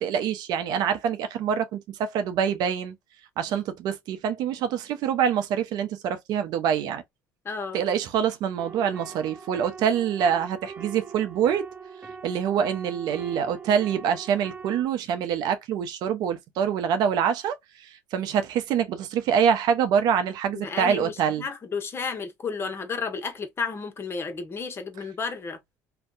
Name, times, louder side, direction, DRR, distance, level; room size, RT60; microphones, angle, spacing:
voice 1, 0.0-3.0 3.4-7.0 7.7-11.7 12.2-21.4, right 8 dB, 65° right, 0.6 m, -25 dB
voice 2, 7.4-7.8 20.5-25.6, left 5 dB, 30° left, 0.9 m, -32 dB
sound 1, 8.6-14.8, right 5 dB, 20° right, 0.4 m, -42 dB
2.6 x 2.2 x 2.3 m
supercardioid pair, 90°, 8 cm